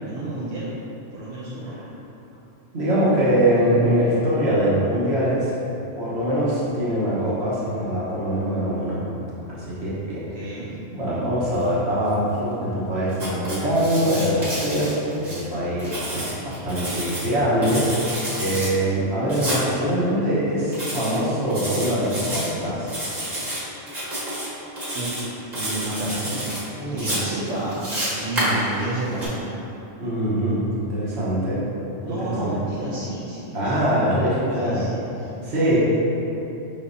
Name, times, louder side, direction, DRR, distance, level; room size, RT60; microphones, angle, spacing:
voice 1, 0.0-0.7 1.1-1.8 10.1-10.7 24.9-26.5 26.9-29.4 32.1-33.9 34.6-35.3, right 2 dB, 80° right, -8 dB, 1.0 m, -31 dB
voice 2, 2.7-5.5 6.0-9.0 9.5-10.2 10.9-22.9 26.8-27.1 30.0-31.6 32.0-32.2 32.4-32.5 33.5-34.9 35.4-35.8, equal, 60° right, -8 dB, 1.3 m, -23 dB
Writing, 13.1-15.4 15.8-17.3 17.6-18.7 19.3-19.6 20.7-21.2 21.5-22.5 22.9-23.6 23.9-24.5 24.8-25.2 25.5-26.6 27.0-29.3, right 1 dB, 35° right, 1.3 m, -29 dB
5.5 x 3.5 x 2.7 m, 3.0 s
omnidirectional pair, 1.3 m